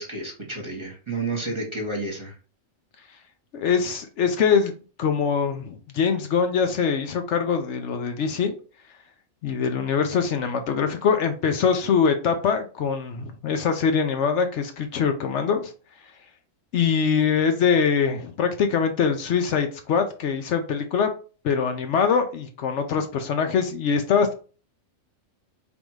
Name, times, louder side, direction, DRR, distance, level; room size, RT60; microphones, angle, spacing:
voice 1, 0.0-2.4, right 2 dB, 25° right, -1 dB, 1.1 m, -31 dB
voice 2, 3.5-4.7 5.0-8.5 9.4-15.7 16.7-21.1 21.4-24.3, left 6 dB, 70° left, 7 dB, 0.9 m, -23 dB
3.5 x 2.6 x 4.6 m, 0.37 s
omnidirectional pair, 1.3 m